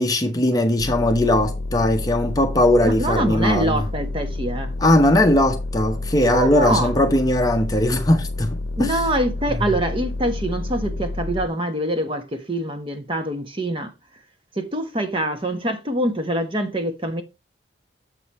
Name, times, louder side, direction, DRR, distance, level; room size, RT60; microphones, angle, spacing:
voice 1, 0.0-3.8 4.8-9.0, left 1 dB, 20° left, 0.8 m, -19 dB
sound 1, 0.8-11.5, left 2 dB, 70° left, 0.8 m, -29 dB
voice 2, 2.8-4.7 6.2-6.9 8.8-13.9 14.5-17.2, right 1 dB, 30° right, 1.2 m, -24 dB
7.6 x 5.3 x 4.2 m
head